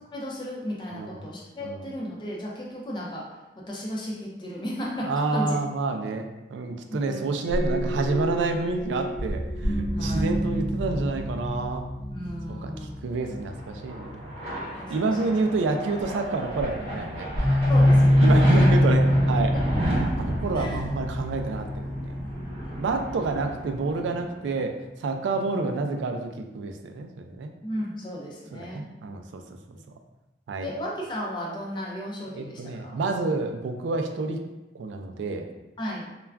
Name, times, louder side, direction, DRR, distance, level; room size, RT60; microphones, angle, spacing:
voice 1, 0.1-3.3 3.6-5.6 6.9-7.2 9.9-10.3 12.1-13.0 13.3-13.4 14.8-15.2 17.7-18.7 19.5-19.6 20.2-20.3 20.5-20.9 22.4-22.8 27.6-28.8 30.6-33.0 35.8-36.1, equal, 25° left, -3 dB, 0.5 m, -35 dB
voice 2, 0.9-1.3 1.6-1.9 5.1-11.8 12.5-12.7 13.0-14.3 14.9-17.6 18.2-19.5 19.9-22.5 22.8-24.7 25.0-27.5 28.5-29.4 30.5-30.7 32.3-34.4 34.7-35.5, right 3 dB, 90° right, 5 dB, 0.3 m, -29 dB
sound 1, 7.4-14.3 16.0-16.1 16.6-23.7, equal, 65° left, 0.9 m, -25 dB
sound 2, 13.2-24.5, equal, 30° right, 0.8 m, -32 dB
2.3 x 2.2 x 3.3 m, 1.0 s
head